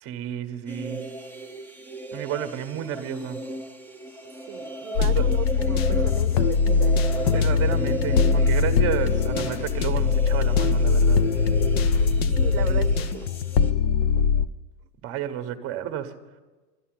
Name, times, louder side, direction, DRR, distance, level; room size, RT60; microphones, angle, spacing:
voice 1, 0.0-1.1 2.1-3.4 5.1-5.2 7.3-11.2 15.0-16.1, right 10 dB, 30° right, 9 dB, 0.9 m, -31 dB
sound 1, 0.7-13.7, right 2 dB, 5° left, 0.7 m, -36 dB
voice 2, 4.5-7.0 12.3-13.3, right 13 dB, 65° right, 10 dB, 0.7 m, -36 dB
sound 2, 5.0-14.5, left 5 dB, 40° left, 0.4 m, -21 dB
12.5 x 11.0 x 7.5 m, 1.3 s
supercardioid pair, 140°, 50 cm